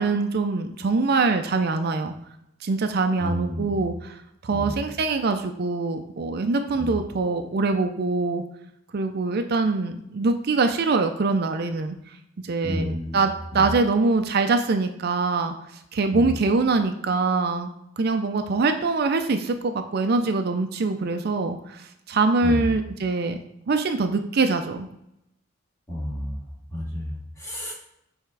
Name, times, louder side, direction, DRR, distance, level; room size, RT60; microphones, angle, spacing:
voice 1, 0.0-2.1 2.6-4.2 4.4-8.4 8.9-12.0 12.4-15.5 15.9-17.7 18.0-23.4 23.7-24.9, right 3 dB, 55° right, 6 dB, 0.5 m, -24 dB
voice 2, 3.2-3.8 4.5-4.8 6.8-6.9 12.6-13.2 13.5-13.7 16.1-16.3 22.4-22.6 25.9-26.4 26.7-27.7, left 1 dB, 15° left, -5 dB, 2.2 m, -30 dB
6.7 x 3.5 x 4.7 m, 0.80 s
head